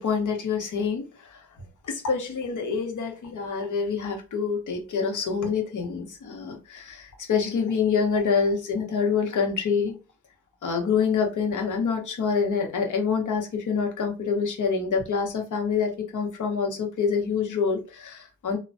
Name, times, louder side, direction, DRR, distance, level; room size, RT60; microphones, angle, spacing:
voice 1, 0.0-1.4 1.8-9.9 10.6-18.6, left 5 dB, 55° left, 1.0 m, -26 dB
3.0 x 2.1 x 2.6 m
hypercardioid pair, 45°, 37 cm